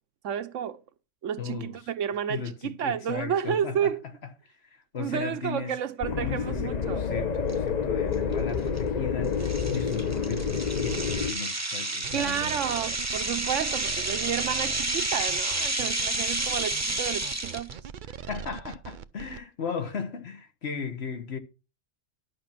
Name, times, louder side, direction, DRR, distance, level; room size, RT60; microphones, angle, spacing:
voice 1, 0.2-0.8 1.2-4.0 5.0-7.1 12.1-17.7, right 9 dB, 75° right, 1.1 m, -31 dB
voice 2, 1.4-1.7 2.3-3.9 4.4-5.8 6.2-9.4 9.7-12.6 18.3-21.4, left 6 dB, 55° left, 1.5 m, -36 dB
sound 1, 6.0-11.3, left 6 dB, 40° left, 0.7 m, -28 dB
sound 2, 7.5-7.6 8.1-8.3 8.8-8.9 9.4-17.7, right 2 dB, 15° right, 0.8 m, -30 dB
sound 3, 12.0-19.4, right 8 dB, 50° right, 0.6 m, -41 dB
11.0 x 6.0 x 5.9 m
omnidirectional pair, 1.3 m